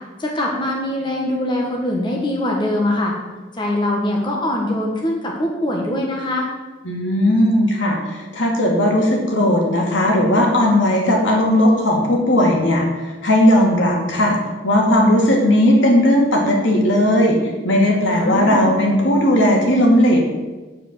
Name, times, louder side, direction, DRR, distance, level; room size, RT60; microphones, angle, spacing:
voice 1, 0.2-3.1 3.5-6.5 18.1-18.7, left 1 dB, 25° left, -1 dB, 1.4 m, -22 dB
voice 2, 6.8-14.4 14.6-17.4 17.6-20.2, left 1 dB, 75° left, -1 dB, 2.3 m, -16 dB
9.0 x 4.9 x 7.4 m, 1.2 s
head